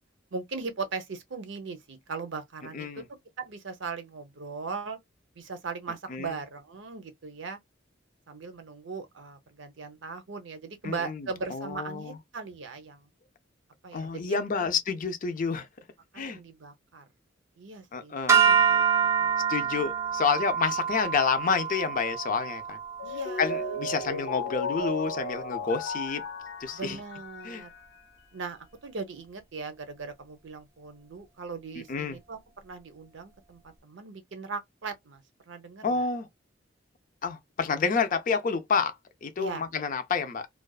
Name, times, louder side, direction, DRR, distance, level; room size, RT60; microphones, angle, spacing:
voice 1, 0.3-3.0 3.4-5.0 5.4-7.6 8.3-13.1 13.8-14.7 16.1-17.0 17.6-18.2 18.4-19.3 23.0-23.8 26.7-27.7 28.3-36.1 39.4-39.6, right 4 dB, 70° right, 0.7 m, -39 dB
voice 2, 10.8-12.2 13.9-15.7 16.2-16.4 17.9-18.4 19.5-22.8 23.4-26.2 26.6-27.0 27.4-27.6 31.9-32.2 35.8-36.3 37.2-38.9 39.2-40.5, left 5 dB, 45° left, 0.4 m, -29 dB
sound 1, 18.3-24.6, right 7 dB, 15° right, 0.5 m, -27 dB
Mallet percussion, 23.0-28.0, left 2 dB, 80° left, 0.7 m, -35 dB
2.4 x 2.2 x 2.3 m
head